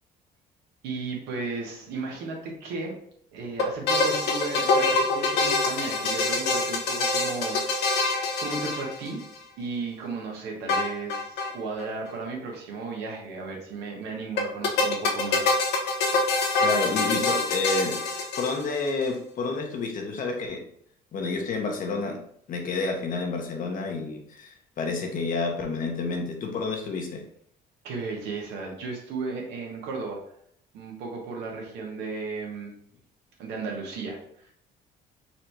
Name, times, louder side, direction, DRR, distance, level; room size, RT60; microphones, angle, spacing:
voice 1, 0.8-2.9 3.3-8.2 8.4-9.2 9.6-15.5 27.8-30.2 30.7-32.7 33.4-34.6, right 3 dB, 90° right, 0 dB, 1.4 m, -35 dB
sound 1, 3.6-9.4 10.7-11.5 11.8-11.9 12.1-12.2 14.4-18.9, left 3 dB, 75° left, 1.0 m, -25 dB
voice 2, 16.6-18.0 18.4-20.6 21.1-22.2 22.5-27.2, left 3 dB, 55° left, 3 dB, 1.0 m, -29 dB
4.2 x 2.7 x 4.5 m, 0.67 s
cardioid pair, 110°, 17 cm